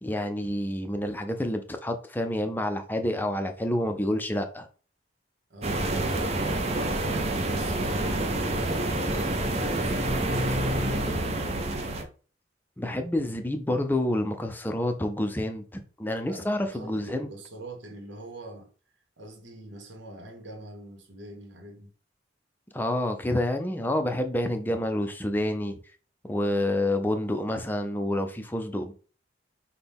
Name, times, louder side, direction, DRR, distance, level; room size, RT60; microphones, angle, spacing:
voice 1, 0.0-4.7 12.8-17.3 22.7-25.8 26.2-28.9, left 1 dB, 10° left, 0.5 m, -28 dB
voice 2, 5.5-9.2 9.5-12.0 16.3-18.7 19.2-21.9, right 1 dB, 75° right, 1.2 m, -44 dB
sound 1, 5.6-12.0, right 1 dB, 35° right, 0.6 m, -27 dB
6.0 x 2.2 x 3.5 m
head